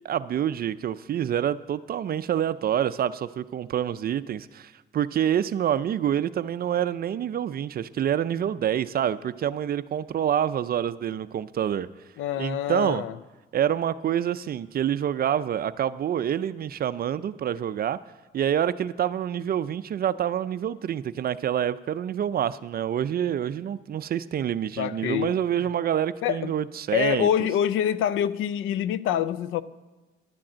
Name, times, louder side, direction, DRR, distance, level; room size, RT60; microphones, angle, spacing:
voice 1, 0.0-11.9 12.4-13.0 13.5-18.0 18.3-27.3, right 10 dB, 50° right, 0.4 m, -27 dB
voice 2, 12.2-13.2 24.8-25.4 26.2-26.5 26.9-29.6, left 10 dB, 85° left, 0.5 m, -26 dB
11.5 x 7.6 x 7.4 m
cardioid pair, 90°, 20 cm